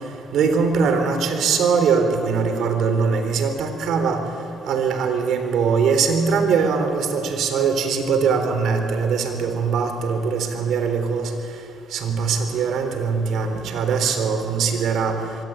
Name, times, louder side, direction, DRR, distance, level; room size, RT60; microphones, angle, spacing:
voice 1, 0.3-4.2 4.6-11.3 11.9-15.2, right 5 dB, 80° right, 7 dB, 3.8 m, -21 dB
26.0 x 23.0 x 9.1 m, 2.6 s
cardioid pair, 90°, 0 cm